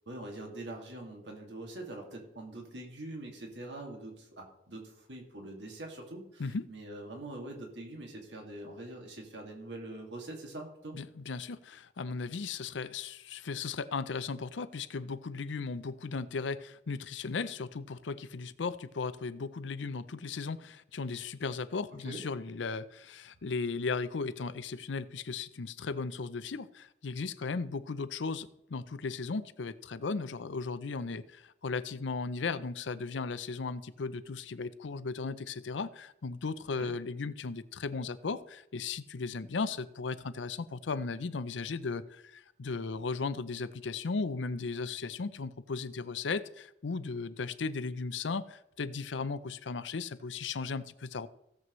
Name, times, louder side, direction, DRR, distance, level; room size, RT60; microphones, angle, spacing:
voice 1, 0.1-11.0 22.0-22.2 36.8-36.9, right 1 dB, 70° right, 1 dB, 2.2 m, -44 dB
voice 2, 10.9-51.3, left 4 dB, 90° left, 14 dB, 0.6 m, -36 dB
16.5 x 7.7 x 3.1 m, 0.81 s
head